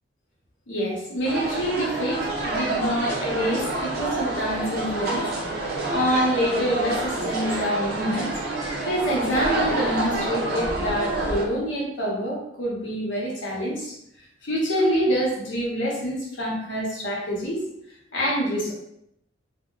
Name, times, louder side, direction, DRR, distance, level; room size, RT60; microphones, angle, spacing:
voice 1, 0.7-5.3 5.6-8.3 8.6-14.0 14.4-17.6 18.1-18.7, equal, 85° left, -3 dB, 0.9 m, -26 dB
sound 1, 1.2-11.4, right 2 dB, 60° right, 0.5 m, -28 dB
2.7 x 2.1 x 2.4 m, 0.76 s
head